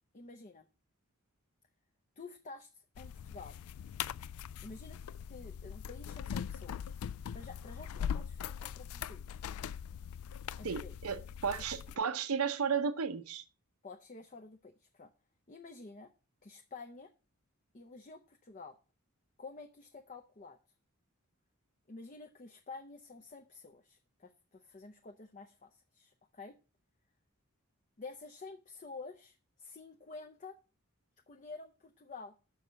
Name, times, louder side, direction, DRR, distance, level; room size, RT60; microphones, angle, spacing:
voice 1, 0.1-0.7 2.2-3.6 4.6-5.0 5.3-7.0 7.3-9.4 10.6-10.9 13.8-15.1 15.5-16.1 16.4-17.1 17.7-18.8 19.4-20.6 21.9-26.6 28.0-30.6 31.3-32.3, left 3 dB, 35° left, 0.6 m, -50 dB
sound 1, 2.9-12.0, left 8 dB, 85° left, 0.3 m, -41 dB
voice 2, 10.6-13.4, right 6 dB, 85° right, 0.7 m, -34 dB
6.7 x 4.8 x 6.9 m
head